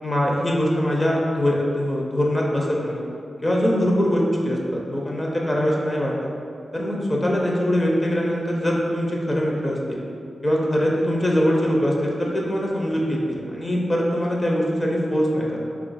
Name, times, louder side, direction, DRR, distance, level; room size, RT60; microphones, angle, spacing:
voice 1, 0.0-3.0 3.4-6.1 6.7-10.1 10.4-15.8, equal, 25° left, -2 dB, 0.4 m, -22 dB
3.2 x 2.4 x 3.9 m, 2.4 s
wide cardioid pair, 110°, 0 cm